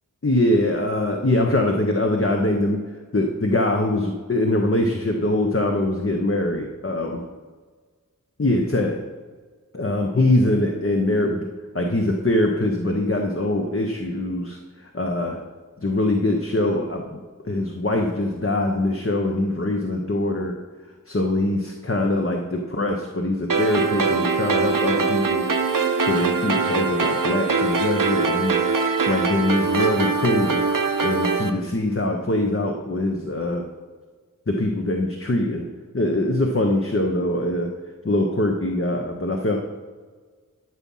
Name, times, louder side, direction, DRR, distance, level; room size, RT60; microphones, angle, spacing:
voice 1, 0.2-2.8 3.1-7.2 8.4-9.0 9.7-11.5 11.7-14.6 14.9-15.4 15.8-17.2 17.5-20.6 21.1-25.4 26.0-28.6 29.1-30.6 31.0-33.6 34.5-35.7 35.9-37.7 38.0-39.6, left 1 dB, 40° left, 2 dB, 1.0 m, -23 dB
a minor keys string and pad, 23.5-31.5, right 4 dB, 70° right, 0.9 m, -22 dB
12.5 x 6.2 x 5.5 m, 1.5 s
wide cardioid pair, 45°, 33 cm